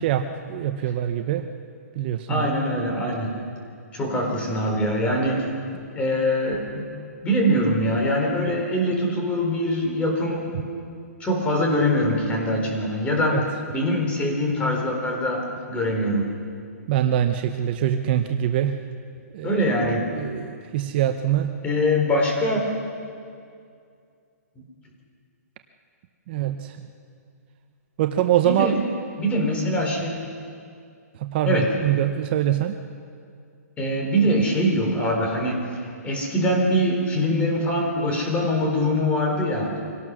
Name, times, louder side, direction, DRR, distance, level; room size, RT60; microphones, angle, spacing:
voice 1, 0.0-1.4 2.0-2.5 13.2-13.4 16.9-18.8 19.3-19.5 19.8-21.5 26.3-26.8 28.0-28.7 31.2-32.7, right 11 dB, 35° right, 7 dB, 0.8 m, -24 dB
voice 2, 2.3-3.3 3.9-5.5 5.9-6.9 7.2-10.6 11.2-16.3 19.4-20.1 21.6-22.6 24.6-24.7 28.4-28.8 29.2-30.2 31.4-31.7 33.8-39.7, equal, 15° left, 0 dB, 4.1 m, -23 dB
25.0 x 18.0 x 6.3 m, 2.3 s
hypercardioid pair, 155°, 9 cm